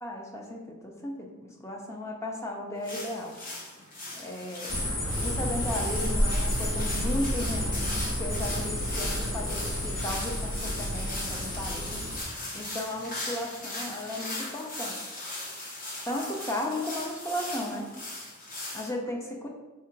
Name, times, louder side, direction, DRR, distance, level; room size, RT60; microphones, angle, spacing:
voice 1, 0.0-3.4 4.1-12.0 12.5-15.0 16.1-17.9 18.7-19.5, left 1 dB, 15° left, 0 dB, 0.5 m, -35 dB
sound 1, 2.8-18.9, left 2 dB, 40° left, 0.9 m, -39 dB
sound 2, 4.7-12.2, equal, 65° left, 1.2 m, -30 dB
3.7 x 2.4 x 4.4 m, 1.1 s
head